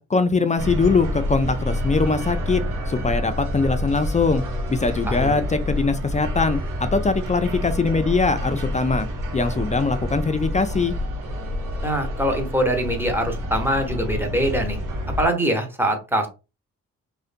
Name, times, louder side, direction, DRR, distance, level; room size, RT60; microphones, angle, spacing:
voice 1, 0.0-2.6 2.9-4.4 4.7-9.1 9.3-10.9, left 4 dB, 20° left, 9 dB, 0.3 m, -22 dB
sound 1, 0.6-15.3, left 1 dB, 65° right, 0.9 m, -28 dB
voice 2, 5.0-5.4 11.8-14.8 15.2-16.3, right 1 dB, 5° right, 3 dB, 0.9 m, -23 dB
2.5 x 2.2 x 2.5 m, 0.29 s
supercardioid pair, 50°, 34 cm